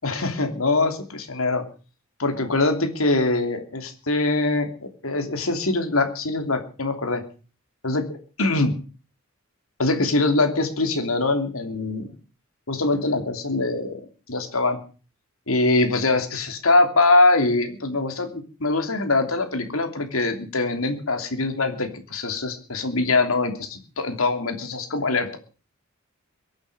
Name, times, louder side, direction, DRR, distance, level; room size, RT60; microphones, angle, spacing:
voice 1, 0.0-1.6 2.2-7.2 7.8-8.0 8.4-8.7 9.8-12.1 12.7-14.0 14.3-14.8 15.5-25.4, left 2 dB, 80° left, 6 dB, 3.0 m, -23 dB
23.0 x 8.9 x 6.8 m, 0.37 s
head